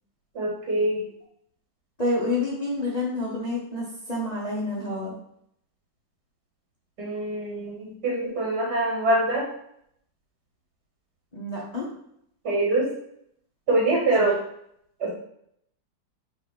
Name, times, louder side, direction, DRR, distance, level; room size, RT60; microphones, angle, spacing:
voice 1, 0.3-1.0 7.0-9.4 12.4-12.9 13.7-14.4 15.0-15.1, right 2 dB, 55° right, -4 dB, 2.8 m, -24 dB
voice 2, 2.0-5.1 11.3-11.8 14.2-14.3, left 2 dB, 25° left, -5 dB, 1.2 m, -28 dB
5.0 x 4.3 x 4.7 m, 0.72 s
omnidirectional pair, 2.1 m